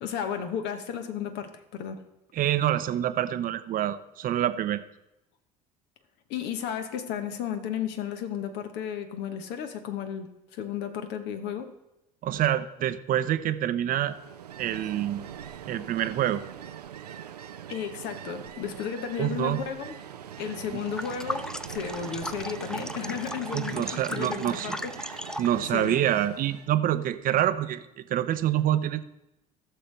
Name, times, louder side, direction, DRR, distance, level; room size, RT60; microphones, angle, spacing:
voice 1, 0.0-2.0 6.3-11.7 17.7-20.0 20.4-25.2 25.7-26.0, left 8 dB, 60° left, 8 dB, 1.1 m, -34 dB
voice 2, 2.3-4.8 12.2-14.1 14.6-15.3 15.7-16.4 19.2-19.6 23.5-24.7 25.4-29.0, right 11 dB, 45° right, 12 dB, 0.6 m, -26 dB
Ocean, 13.9-26.7, right 9 dB, 90° right, 0.4 m, -42 dB
sound 1, 20.8-25.6, left 1 dB, 5° left, 0.3 m, -37 dB
15.5 x 6.7 x 3.3 m, 0.90 s
hypercardioid pair, 60°, 20 cm